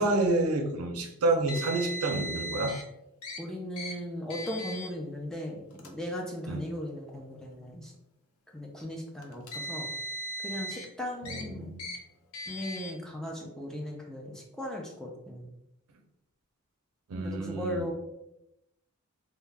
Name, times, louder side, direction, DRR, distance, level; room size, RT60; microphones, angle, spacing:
voice 1, 0.0-2.8 6.5-6.6 11.2-11.9 17.1-17.9, right 2 dB, 80° right, 3 dB, 0.5 m, -29 dB
Car, 1.5-2.8 3.2-3.4 3.8-3.9 4.3-4.9 5.7-5.9 6.8-6.9 9.2-10.9 11.3-11.4 11.8-12.0 12.3-12.9, equal, 75° left, 0.4 m, -38 dB
voice 2, 3.4-7.9 8.5-9.9 10.4-11.8 12.5-15.5 17.2-17.9, left 1 dB, 5° left, -1 dB, 0.4 m, -37 dB
2.3 x 2.0 x 3.2 m, 0.87 s
head